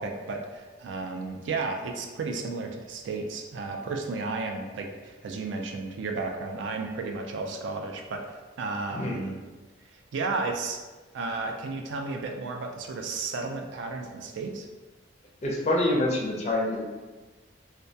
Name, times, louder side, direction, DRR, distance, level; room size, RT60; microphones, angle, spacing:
voice 1, 0.0-9.4 9.9-10.8 11.1-14.7, right 3 dB, 70° right, 3 dB, 0.3 m, -33 dB
voice 2, 8.9-9.2 15.4-16.8, left 1 dB, 35° left, -2 dB, 0.4 m, -26 dB
2.2 x 2.2 x 2.6 m, 1.3 s
head